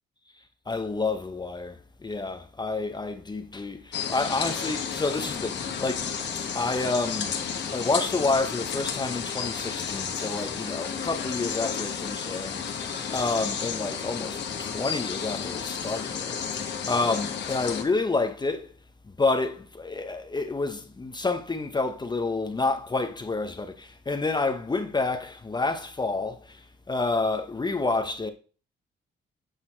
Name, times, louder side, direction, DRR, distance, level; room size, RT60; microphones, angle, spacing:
voice 1, 0.7-6.1 6.5-7.3 7.7-18.7 19.2-28.3, left 3 dB, 20° left, 0.8 m, -29 dB
sound 1, 3.9-17.8, left 7 dB, 60° left, 1.4 m, -32 dB
8.1 x 4.1 x 4.4 m
cardioid pair, 90°, 20 cm